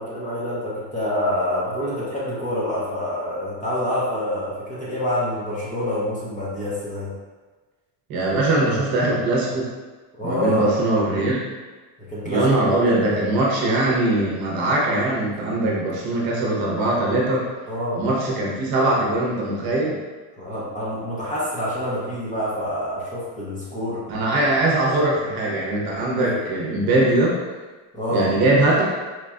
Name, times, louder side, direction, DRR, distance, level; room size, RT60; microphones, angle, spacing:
voice 1, 0.0-7.1 10.2-10.7 12.1-12.5 12.8-13.2 17.7-18.0 20.4-24.0 26.2-26.4 27.9-28.3, left 1 dB, 15° left, -8 dB, 0.7 m, -26 dB
voice 2, 8.1-9.7 10.2-11.4 12.2-17.5 17.9-20.0 24.1-27.4 28.1-28.9, right 2 dB, 50° right, -3 dB, 0.9 m, -21 dB
4.4 x 2.4 x 2.2 m, 1.3 s
cardioid pair, 135°, 48 cm